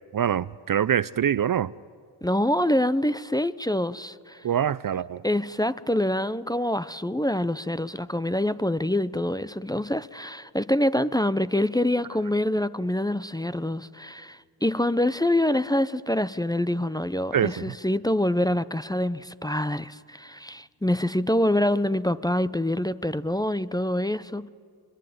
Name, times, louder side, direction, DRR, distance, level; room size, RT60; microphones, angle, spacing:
voice 1, 0.1-1.7 4.4-5.2 17.3-17.5, right 9 dB, 45° right, 0.6 m, -24 dB
voice 2, 2.2-4.5 5.2-24.5, left 1 dB, 10° left, 0.6 m, -25 dB
23.5 x 22.0 x 9.4 m
cardioid pair, 60°, 48 cm